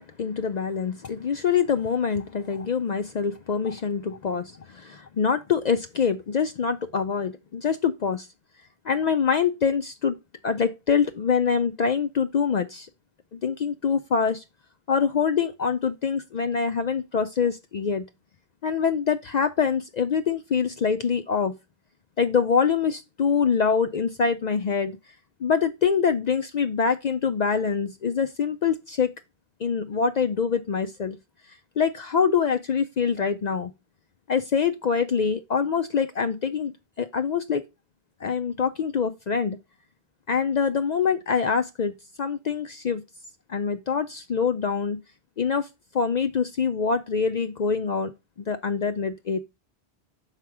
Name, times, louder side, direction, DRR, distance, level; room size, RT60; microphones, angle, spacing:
voice 1, 0.0-8.3 8.8-10.1 10.4-12.9 13.3-14.4 14.9-18.1 18.6-21.6 22.2-25.0 25.4-29.1 29.6-31.2 31.5-33.7 34.3-36.7 37.0-37.6 38.2-39.6 40.3-41.9 42.2-43.0 43.5-45.0 45.4-45.7 45.9-48.1 48.5-49.4, left 6 dB, 55° left, 0.5 m, -25 dB
5.9 x 4.9 x 4.7 m
omnidirectional pair, 1.1 m